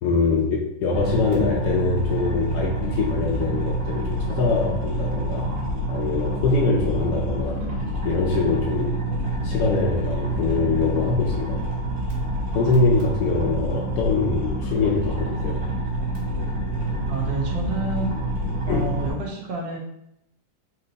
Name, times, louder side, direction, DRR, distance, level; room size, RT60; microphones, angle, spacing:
voice 1, 0.0-5.5 5.9-7.6 8.0-9.0 9.4-11.6 12.5-15.6 18.7-18.9, left 4 dB, 70° left, -1 dB, 1.1 m, -23 dB
sound 1, 0.9-19.1, right 1 dB, 45° right, 2.0 m, -27 dB
voice 2, 17.1-18.1 18.6-19.8, right 2 dB, 80° right, 0 dB, 1.6 m, -29 dB
4.3 x 2.8 x 3.9 m, 0.79 s
omnidirectional pair, 1.9 m